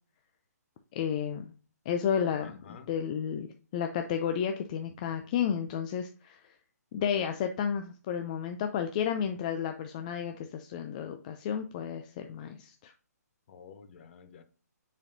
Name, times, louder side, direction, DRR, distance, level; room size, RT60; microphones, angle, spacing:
voice 1, 0.9-1.5 1.9-3.5 3.7-6.5 6.9-12.9, left 8 dB, 25° left, 0.4 m, -32 dB
voice 2, 2.4-2.9 13.5-14.4, left 6 dB, 40° left, 0.9 m, -50 dB
7.3 x 5.3 x 2.7 m
hypercardioid pair, 160°, 9 cm